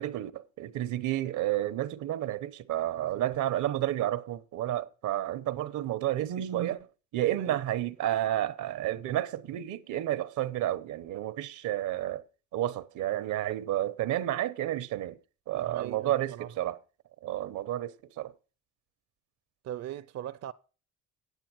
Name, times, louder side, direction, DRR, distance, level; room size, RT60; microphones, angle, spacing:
voice 1, 0.0-6.9 7.1-12.2 12.5-15.2 15.5-16.8 17.2-18.3, right 13 dB, 80° right, 0.8 m, -31 dB
voice 2, 3.0-3.4 7.4-7.6 15.5-16.5 19.6-20.5, right 11 dB, 60° right, 0.6 m, -40 dB
9.0 x 8.7 x 6.1 m
cardioid pair, 90°, 30 cm